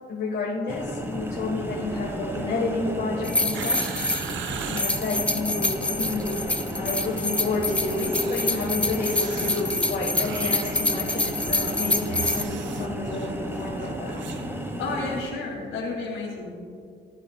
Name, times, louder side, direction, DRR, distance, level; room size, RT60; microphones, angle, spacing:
voice 1, 0.1-14.2, left 3 dB, 60° left, -3 dB, 1.5 m, -31 dB
sound 1, 0.7-15.2, equal, 10° right, 1.3 m, -32 dB
sound 2, 3.2-12.4, left 2 dB, 5° left, 0.7 m, -27 dB
sound 3, 3.5-5.2 6.0-6.6 6.9-7.3 7.9-14.5 14.7-14.8, right 8 dB, 70° right, 0.7 m, -39 dB
voice 2, 14.7-16.5, left 3 dB, 85° left, -3 dB, 2.7 m, -31 dB
18.5 x 8.2 x 2.4 m, 2.3 s
cardioid pair, 90°, 20 cm